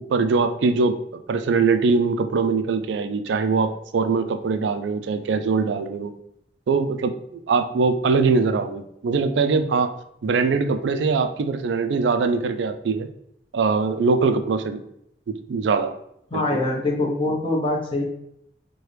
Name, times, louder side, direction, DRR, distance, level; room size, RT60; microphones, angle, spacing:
voice 1, 0.1-1.0 1.3-6.1 6.7-9.9 10.2-13.1 13.5-14.8 15.3-15.9 16.3-16.4, right 4 dB, 85° right, 9 dB, 0.4 m, -22 dB
voice 2, 16.3-18.0, left 2 dB, 30° left, -1 dB, 0.9 m, -23 dB
4.7 x 2.3 x 3.2 m, 0.73 s
head